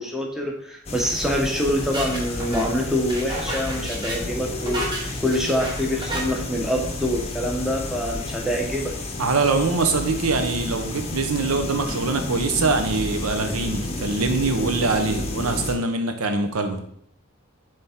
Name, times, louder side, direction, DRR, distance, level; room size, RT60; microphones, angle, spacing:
voice 1, 0.0-8.9, equal, ahead, -1 dB, 0.8 m, -25 dB
sound 1, 0.9-15.8, left 2 dB, 30° left, 0.7 m, -31 dB
sound 2, 1.2-6.2, right 1 dB, 20° right, 1.1 m, -33 dB
voice 2, 9.2-16.8, right 3 dB, 80° right, 7 dB, 0.7 m, -23 dB
6.9 x 3.4 x 4.3 m, 0.69 s
head